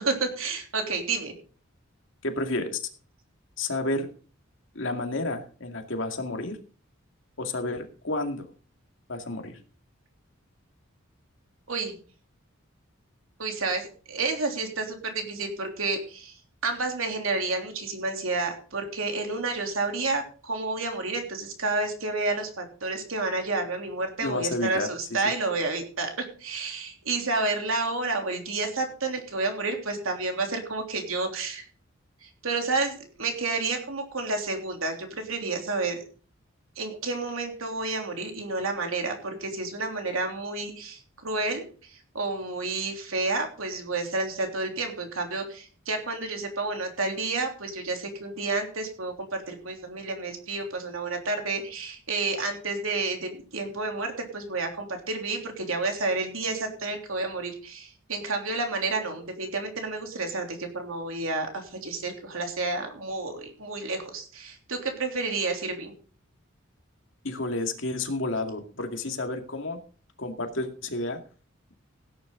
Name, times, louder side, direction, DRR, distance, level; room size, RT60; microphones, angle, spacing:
voice 1, 0.0-1.3 11.7-11.9 13.4-16.4 16.6-31.7 32.2-36.0 36.7-65.9, right 3 dB, 85° right, 3 dB, 3.4 m, -30 dB
voice 2, 2.2-2.8 3.6-4.1 4.7-6.6 7.4-8.5 9.1-9.6 24.2-25.2 67.2-69.8 70.2-71.2, left 2 dB, 65° left, 4 dB, 2.2 m, -31 dB
16.5 x 9.7 x 3.8 m, 0.40 s
head